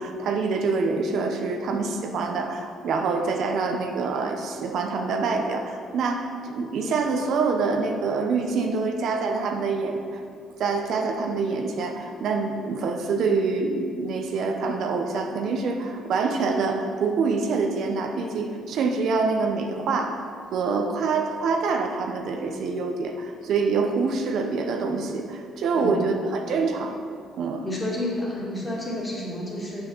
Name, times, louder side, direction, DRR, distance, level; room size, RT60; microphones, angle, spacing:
voice 1, 0.0-10.2 10.6-20.2 20.5-27.0 27.4-27.6, right 4 dB, 65° right, 3 dB, 0.8 m, -26 dB
voice 2, 27.6-29.8, left 1 dB, 20° left, -4 dB, 2.2 m, -30 dB
7.2 x 5.7 x 6.5 m, 2.2 s
cardioid pair, 125°, 0 cm